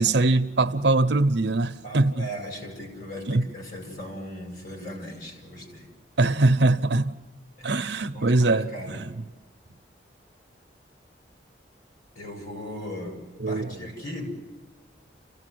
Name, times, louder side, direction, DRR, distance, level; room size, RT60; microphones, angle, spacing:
voice 1, 0.0-2.3 3.3-3.5 6.2-7.1 7.6-9.2 13.4-13.9, right 2 dB, 70° right, 0.7 m, -22 dB
voice 2, 1.8-5.9 7.6-7.7 8.1-9.0 12.2-13.2 13.5-14.3, equal, 50° left, 5.5 m, -38 dB
29.5 x 15.5 x 7.8 m
head